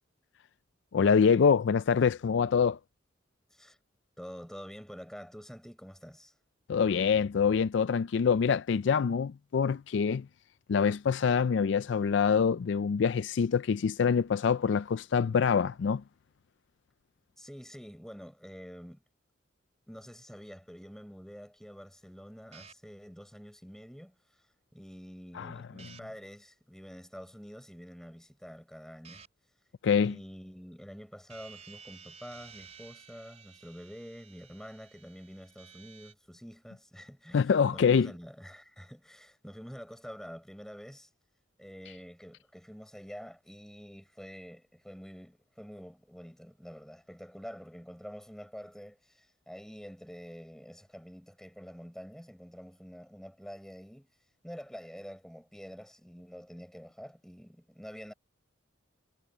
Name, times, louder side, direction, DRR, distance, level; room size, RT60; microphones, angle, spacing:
voice 1, 0.9-2.8 6.7-10.3 10.7-16.0 25.3-25.6 29.8-30.2 37.3-38.1, left 6 dB, 60° left, 0.4 m, -25 dB
voice 2, 4.2-6.3 17.4-19.0 19.9-24.4 24.7-29.3 30.0-41.1 41.6-54.1 54.4-58.1, equal, 5° left, 5.8 m, -47 dB
sound 1, 22.5-22.7 25.8-26.0 29.0-29.3 31.3-36.1, right 6 dB, 35° right, 4.0 m, -53 dB
head